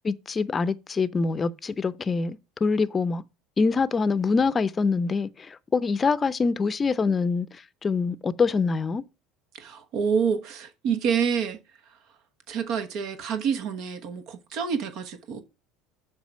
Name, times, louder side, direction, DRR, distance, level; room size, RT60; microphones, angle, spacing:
voice 1, 0.0-3.2 3.6-7.5 7.8-9.0, left 4 dB, 30° left, 0.6 m, -25 dB
voice 2, 9.5-11.6 11.9-12.0 12.5-15.4, right 6 dB, 60° right, 1.2 m, -27 dB
7.2 x 4.8 x 5.7 m
hypercardioid pair, 80°, 0 cm